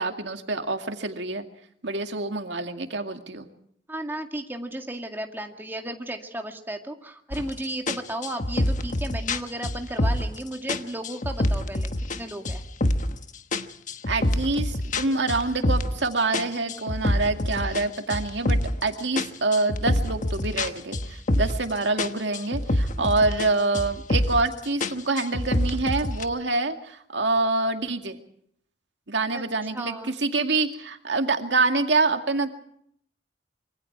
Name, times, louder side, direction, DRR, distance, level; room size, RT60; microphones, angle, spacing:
voice 1, 0.0-1.4 1.8-3.5 14.1-28.2 29.1-32.5, right 3 dB, 80° right, 5 dB, 2.2 m, -26 dB
voice 2, 3.9-12.6 23.0-23.2 26.3-26.5 29.3-29.4 29.7-30.1, right 1 dB, 10° right, 3 dB, 2.1 m, -34 dB
sound 1, 7.3-7.5 7.9-10.4 10.7-12.2 12.4-13.2 13.5-16.0 16.3-18.8 19.2-21.7 22.0-23.5 23.7-24.5 24.8-26.2, left 1 dB, 45° left, 1.2 m, -26 dB
26.0 x 24.0 x 4.7 m, 0.68 s
head